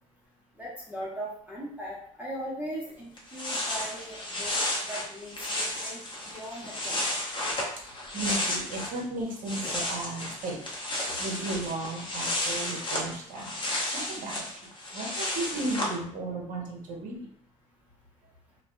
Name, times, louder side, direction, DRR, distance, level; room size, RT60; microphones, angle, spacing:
voice 1, 0.6-4.6 4.8-7.0 12.1-12.3, right 1 dB, 10° right, -5 dB, 0.9 m, -39 dB
sound 1, 2.9-3.0 3.2-9.0 9.3-15.9, left 1 dB, 30° left, 0.9 m, -32 dB
voice 2, 8.1-10.6 11.2-13.5 13.9-14.4 14.9-17.2, right 2 dB, 55° right, 0 dB, 0.9 m, -34 dB
2.5 x 2.3 x 2.2 m, 0.65 s
hypercardioid pair, 70°, 17 cm